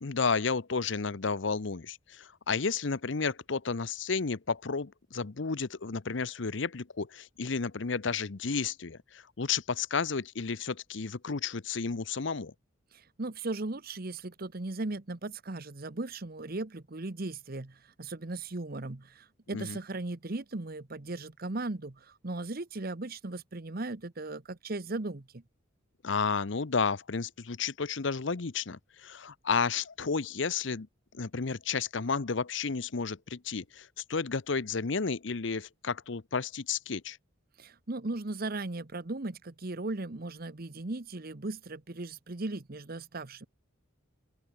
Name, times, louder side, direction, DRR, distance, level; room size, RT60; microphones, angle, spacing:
voice 1, 0.0-12.5 19.5-19.8 26.0-30.9 31.1-37.2, left 5 dB, 65° left, 0.8 m, -32 dB
voice 2, 12.9-25.4 37.6-43.5, right 2 dB, 50° right, 1.1 m, -37 dB
open air
head